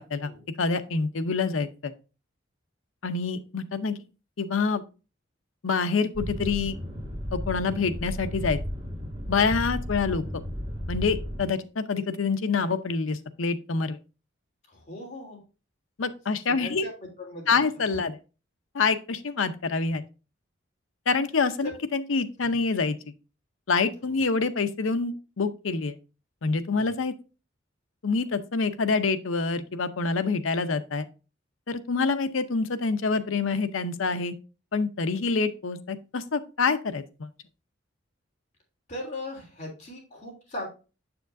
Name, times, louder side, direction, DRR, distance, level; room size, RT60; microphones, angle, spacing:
voice 1, 0.0-0.3 0.6-1.9 3.0-4.0 4.4-4.8 5.6-6.8 7.3-8.6 9.3-10.2 10.9-14.0 16.0-16.9 17.5-18.2 18.7-20.0 21.1-23.0 23.7-26.0 26.4-27.1 28.0-31.1 31.7-34.3 34.7-37.3, left 4 dB, 80° left, 10 dB, 0.7 m, -26 dB
sound 1, 6.1-11.4, equal, 35° right, 2.4 m, -34 dB
voice 2, 14.7-15.4 16.6-16.9 17.2-17.6 21.6-21.7 22.4-22.6 24.0-24.2 26.7-26.9 38.9-40.7, left 1 dB, 35° left, -1 dB, 3.0 m, -39 dB
7.2 x 7.0 x 2.6 m, 0.32 s
head